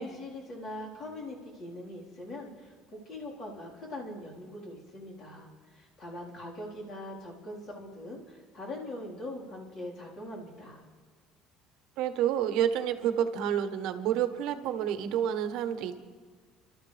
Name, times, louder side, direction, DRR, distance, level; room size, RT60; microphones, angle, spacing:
voice 1, 0.0-10.8, left 1 dB, 40° left, -3 dB, 4.0 m, -42 dB
voice 2, 12.0-16.0, right 9 dB, 65° right, 9 dB, 1.0 m, -29 dB
30.0 x 13.0 x 3.4 m, 1.5 s
cardioid pair, 155°, 0 cm